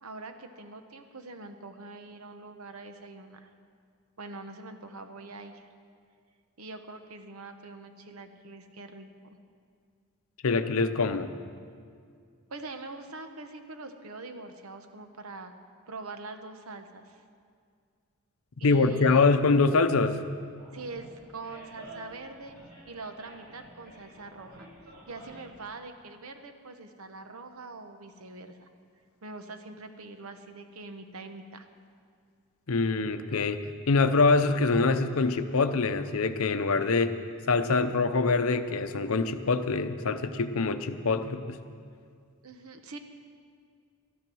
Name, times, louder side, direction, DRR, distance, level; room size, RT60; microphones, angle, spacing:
voice 1, 0.0-3.5 4.2-5.7 6.6-9.4 12.5-15.5 15.9-17.2 18.6-19.2 20.7-22.5 22.9-24.7 25.1-28.7 29.2-31.7 42.4-43.0, right 3 dB, 70° right, 7 dB, 1.0 m, -44 dB
voice 2, 10.4-11.3 18.6-20.2 32.7-33.6 33.9-37.1 37.5-41.6, left 3 dB, 65° left, 9 dB, 0.7 m, -24 dB
Animal, 20.5-25.6, right 1 dB, 45° right, 3.7 m, -50 dB
13.0 x 11.0 x 6.2 m, 2.2 s
head